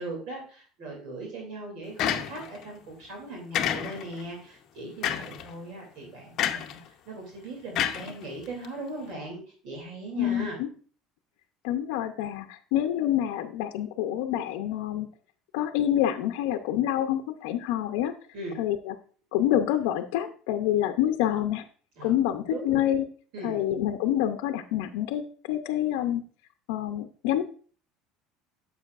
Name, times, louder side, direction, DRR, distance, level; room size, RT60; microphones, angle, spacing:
voice 1, 0.0-6.8 7.1-10.6 18.3-18.6 22.0-22.8 23.3-23.6, right 2 dB, 65° right, 0 dB, 2.7 m, -39 dB
sound 1, 2.0-2.6 3.5-4.2 5.0-5.4 6.4-6.8 7.7-8.6, left 10 dB, 50° left, 0.7 m, -29 dB
voice 2, 10.2-10.7 11.6-15.1 15.5-18.1 18.6-18.9 19.3-21.6 22.0-23.1 23.4-26.2 26.7-27.4, left 11 dB, 85° left, 6 dB, 0.6 m, -27 dB
9.9 x 6.9 x 2.4 m, 0.42 s
cardioid pair, 150°, 0 cm